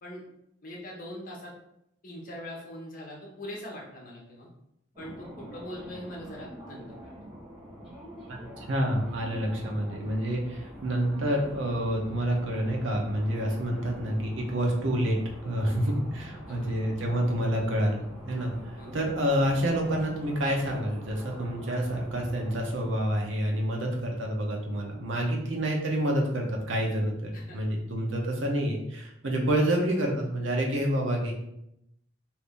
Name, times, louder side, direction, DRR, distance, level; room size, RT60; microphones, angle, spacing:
voice 1, 0.6-1.5 2.0-4.5 5.0-7.1 15.6-15.8 16.5-16.7 18.8-19.0 25.1-25.4 27.3-27.6, left 1 dB, 45° left, -2 dB, 0.9 m, -42 dB
sound 1, 4.9-22.9, equal, 30° right, 1.0 m, -45 dB
voice 2, 8.3-15.2 15.4-31.3, equal, 70° right, 0 dB, 0.7 m, -28 dB
2.7 x 2.6 x 3.5 m, 0.79 s
head